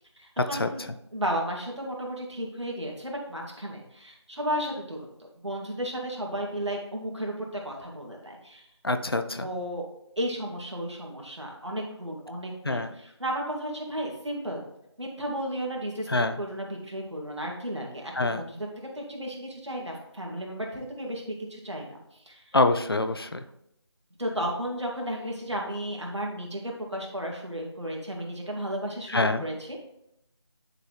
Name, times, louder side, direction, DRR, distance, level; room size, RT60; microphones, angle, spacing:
voice 1, 0.2-0.8 1.1-5.1 5.4-8.6 9.4-9.8 10.2-14.6 15.0-16.1 16.4-18.6 18.9-21.2 21.5-22.0 22.2-22.4 24.2-29.5, equal, 70° right, 0 dB, 2.3 m, -33 dB
voice 2, 8.8-9.5 12.6-12.9 16.1-16.4 18.1-18.4 22.5-23.4 29.1-29.5, left 2 dB, 55° left, 8 dB, 0.6 m, -25 dB
10.5 x 4.0 x 3.3 m, 0.79 s
figure-of-eight pair, 165°, 15 cm